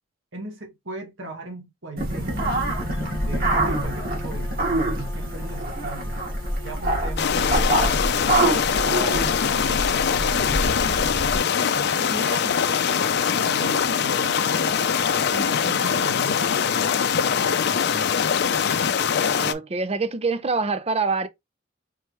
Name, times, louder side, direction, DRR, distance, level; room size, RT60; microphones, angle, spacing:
voice 1, 0.3-2.7 3.2-6.2 6.6-9.0 9.4-11.2 11.6-14.9 15.3-18.1, right 2 dB, 75° right, 1.7 m, -39 dB
Bowed string instrument, 2.0-9.6, left 2 dB, 15° left, 0.9 m, -45 dB
sound 1, 2.0-11.4, right 1 dB, 50° right, 1.6 m, -25 dB
sound 2, 7.2-19.5, left 7 dB, 55° left, 0.5 m, -22 dB
voice 2, 19.2-21.3, right 4 dB, 30° right, 0.5 m, -25 dB
4.6 x 3.1 x 3.1 m
head